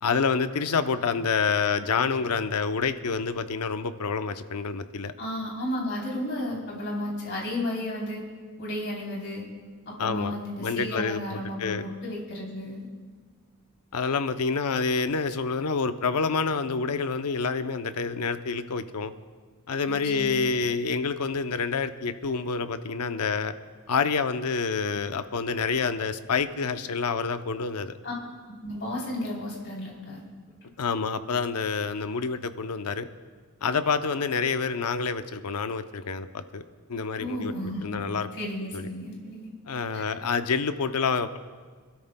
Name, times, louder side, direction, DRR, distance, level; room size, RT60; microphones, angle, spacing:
voice 1, 0.0-5.1 10.0-11.8 13.9-19.1 19.7-23.5 23.9-28.0 30.8-33.1 33.6-36.6 36.9-37.5 37.8-38.3 38.7-38.9 39.7-41.4, left 5 dB, 85° left, 10 dB, 0.6 m, -28 dB
voice 2, 5.2-8.2 8.6-9.4 9.8-12.9 20.0-20.4 28.0-28.1 28.6-30.2 30.6-30.9 37.2-38.0 38.4-39.5 39.9-40.0, left 1 dB, 55° left, -3 dB, 3.4 m, -33 dB
26.5 x 13.0 x 2.2 m, 1.5 s
head